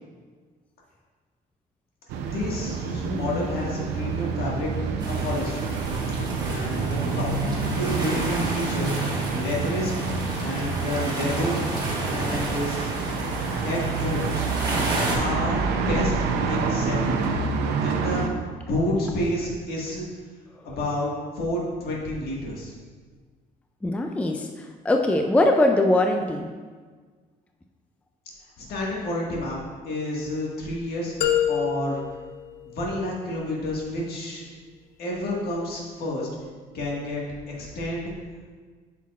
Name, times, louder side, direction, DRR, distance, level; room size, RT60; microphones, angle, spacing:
sound 1, 2.1-18.3, right 5 dB, 85° right, 0.6 m, -27 dB
voice 1, 2.2-4.7 5.1-5.8 6.4-7.3 7.8-9.9 10.4-12.9 13.6-14.5 15.2-16.1 16.5-17.2 17.8-18.3 18.7-20.0 20.6-21.1 21.4-22.7 28.6-31.1 31.5-32.0 32.7-34.5 35.0-36.3 36.7-37.2 37.6-38.1, left 1 dB, 65° left, -3 dB, 1.8 m, -29 dB
sound 2, 5.0-15.1, right 1 dB, 25° right, 1.7 m, -32 dB
voice 2, 23.8-26.5, left 1 dB, 10° left, 4 dB, 0.4 m, -22 dB
sound 3, 31.2-33.3, left 9 dB, 85° left, 0.6 m, -27 dB
8.2 x 5.8 x 2.5 m, 1.5 s
cardioid pair, 110°, 17 cm